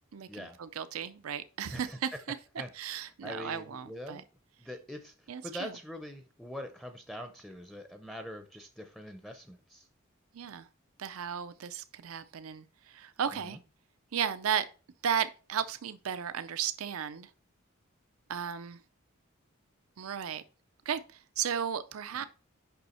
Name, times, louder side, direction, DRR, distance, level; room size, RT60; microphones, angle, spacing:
voice 1, 0.1-2.4 2.7-4.2 5.3-5.8 10.3-10.7 11.0-13.6 14.1-14.6 15.0-17.3 18.3-18.8 20.0-20.4 20.9-21.0 21.4-22.2, right 8 dB, 85° right, 0.5 m, -34 dB
voice 2, 3.2-4.2 4.6-5.1 5.4-9.9 13.4-13.6 22.1-22.2, equal, ahead, 0.5 m, -43 dB
6.8 x 5.5 x 4.3 m
head